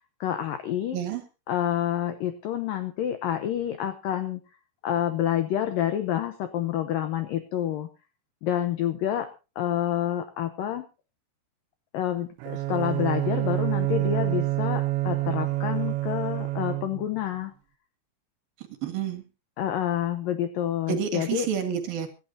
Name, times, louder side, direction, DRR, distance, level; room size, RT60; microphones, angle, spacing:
voice 1, 0.2-1.0 1.5-4.4 4.8-7.9 8.4-9.3 9.6-10.9 11.9-17.5 19.6-21.5, left 11 dB, 90° left, 9 dB, 1.9 m, -28 dB
voice 2, 0.9-1.2 18.6-19.2 20.9-22.1, right 8 dB, 60° right, 6 dB, 3.2 m, -29 dB
Bowed string instrument, 12.4-17.2, right 18 dB, 80° right, 3.1 m, -27 dB
25.0 x 12.5 x 2.8 m, 0.31 s
omnidirectional pair, 5.3 m